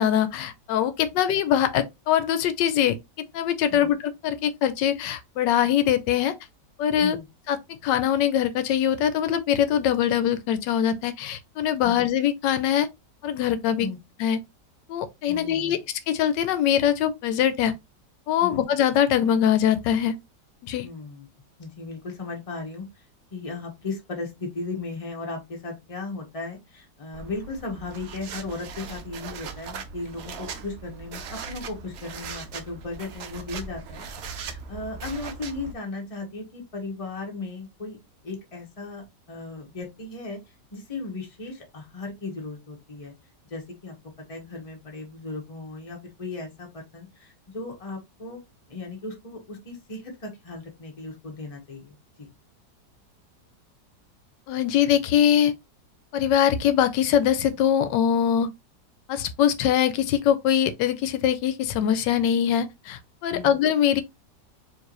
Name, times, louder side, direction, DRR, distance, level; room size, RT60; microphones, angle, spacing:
voice 1, 0.0-3.0 3.3-6.3 6.8-7.2 7.5-7.6 7.8-12.9 13.2-13.9 14.2-14.4 14.9-15.8 16.1-17.7 18.3-20.1 20.6-20.9 54.5-55.5 56.1-58.5 59.1-64.0, left 9 dB, 85° left, 1.2 m, -22 dB
voice 2, 15.3-15.8 18.4-18.7 20.8-21.3 21.6-23.0 23.3-38.0 38.2-40.4 40.7-43.1 43.5-43.9 44.3-48.4 48.7-52.3 63.3-63.6, left 3 dB, 20° left, 1.2 m, -36 dB
sound 1, 27.1-35.7, right 5 dB, 80° right, 0.5 m, -39 dB
4.5 x 3.1 x 2.9 m
omnidirectional pair, 1.9 m